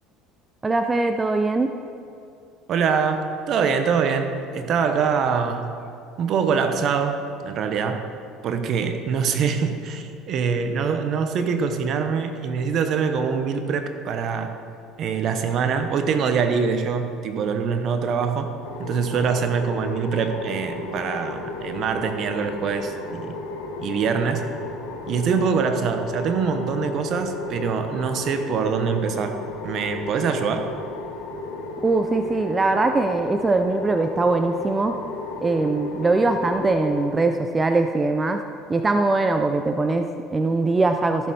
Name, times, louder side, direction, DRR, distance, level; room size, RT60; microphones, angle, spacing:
voice 1, 0.6-1.7 31.8-34.9 35.4-38.4 38.7-41.3, right 3 dB, 20° right, 7 dB, 0.5 m, -21 dB
voice 2, 2.7-5.7 6.2-8.1 8.4-14.6 15.0-18.5 18.8-23.3 23.8-24.5 25.1-30.7, right 6 dB, 55° right, 7 dB, 0.9 m, -24 dB
sound 1, 18.6-37.1, left 3 dB, 80° left, 1.2 m, -34 dB
14.0 x 6.6 x 4.3 m, 2.5 s
supercardioid pair, 90°, 0 cm